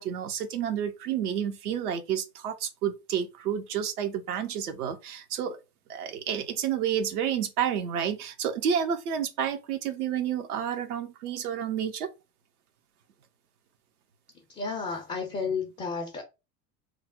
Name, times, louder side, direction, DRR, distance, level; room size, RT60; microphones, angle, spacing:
voice 1, 0.0-5.6 5.9-12.1, right 8 dB, 65° right, 0.7 m, -30 dB
voice 2, 14.6-16.2, left 5 dB, 15° left, 0.4 m, -32 dB
3.2 x 2.0 x 3.6 m
figure-of-eight pair, 70°, 49 cm